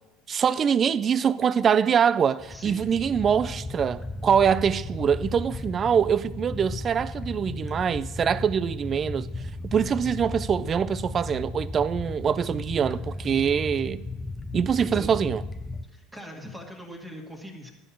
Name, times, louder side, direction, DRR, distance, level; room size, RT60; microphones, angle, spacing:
voice 1, 0.3-9.3 9.7-14.0 14.5-15.4, right 7 dB, 35° right, 0.4 m, -24 dB
sound 1, 2.4-15.8, left 2 dB, 15° left, 0.8 m, -35 dB
voice 2, 2.5-2.9 14.8-15.2 15.9-17.7, equal, 15° right, 1.9 m, -41 dB
12.0 x 5.5 x 7.4 m
figure-of-eight pair, 65°, 0 cm